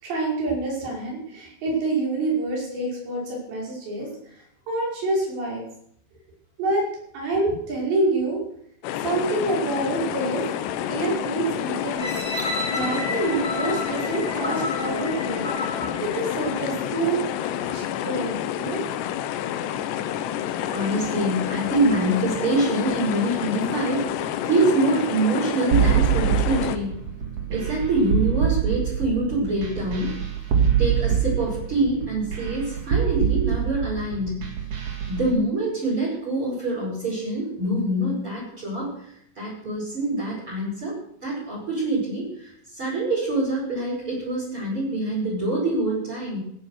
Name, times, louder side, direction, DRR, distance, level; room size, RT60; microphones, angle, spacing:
voice 1, 0.0-4.1 4.7-5.6 6.6-6.8 7.1-8.4 9.0-10.4 10.9-12.1 12.7-17.2 17.6-18.8, right 2 dB, 70° right, -3 dB, 7.6 m, -27 dB
sound 1, 8.8-26.8, left 10 dB, 75° left, 2.9 m, -29 dB
sound 2, 12.0-16.9 17.5-17.6, left 2 dB, 40° left, 0.5 m, -32 dB
voice 2, 20.7-27.0 27.5-30.1 30.8-34.4 35.1-38.9 39.4-41.0 41.2-46.4, right 2 dB, 30° right, -5 dB, 5.8 m, -25 dB
sound 3, 25.7-35.2, right 8 dB, 45° right, 2.5 m, -24 dB
16.5 x 9.8 x 6.5 m, 0.70 s
omnidirectional pair, 5.2 m